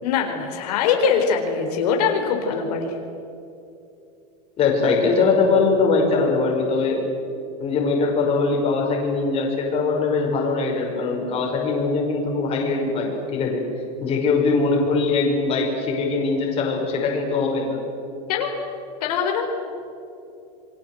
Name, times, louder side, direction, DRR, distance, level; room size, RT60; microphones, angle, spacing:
voice 1, 0.0-3.0 18.3-18.5 19.0-19.5, left 6 dB, 75° left, 2 dB, 4.3 m, -22 dB
voice 2, 4.6-7.0 7.6-13.6 14.0-17.8, left 4 dB, 30° left, 0 dB, 5.5 m, -21 dB
28.5 x 23.0 x 7.9 m, 2.7 s
supercardioid pair, 160°, 20 cm